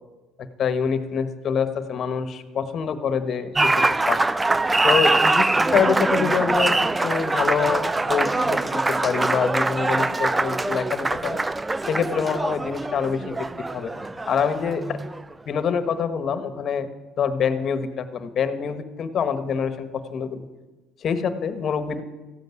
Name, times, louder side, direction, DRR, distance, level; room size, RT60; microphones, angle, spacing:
voice 1, 0.4-4.2 4.8-6.7 7.0-11.4 11.8-13.5 13.7-15.0 15.5-16.9 17.2-20.5 21.0-22.0, left 6 dB, 45° left, 11 dB, 1.3 m, -26 dB
Applause, 3.6-15.3, right 2 dB, 15° right, 0.4 m, -23 dB
14.0 x 8.0 x 9.6 m, 1.2 s
cardioid pair, 105°, 0 cm